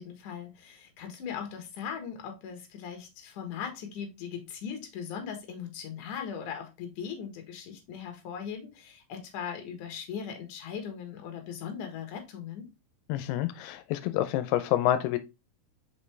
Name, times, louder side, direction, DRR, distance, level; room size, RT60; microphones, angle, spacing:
voice 1, 0.0-12.7, left 7 dB, 60° left, 2.7 m, -39 dB
voice 2, 13.1-15.2, left 13 dB, 90° left, 2.6 m, -28 dB
5.5 x 5.3 x 3.3 m
omnidirectional pair, 4.5 m